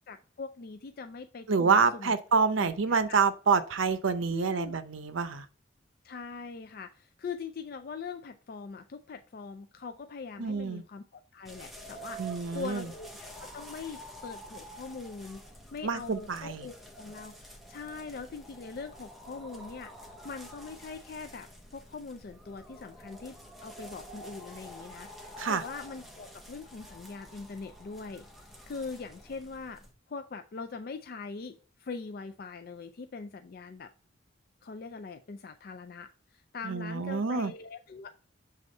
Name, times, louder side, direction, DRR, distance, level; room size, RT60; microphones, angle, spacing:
voice 1, 0.1-2.1 2.6-3.2 4.3-4.7 6.0-15.4 15.7-28.2 28.6-29.8 30.1-33.9 34.6-38.1, left 4 dB, 50° left, 0.4 m, -42 dB
voice 2, 1.5-5.4 10.4-10.8 12.2-12.9 15.8-16.7 25.4-25.6 36.6-37.5, right 5 dB, 80° right, 0.6 m, -27 dB
sound 1, 11.4-29.9, equal, ahead, 0.8 m, -48 dB
6.8 x 3.5 x 5.3 m
head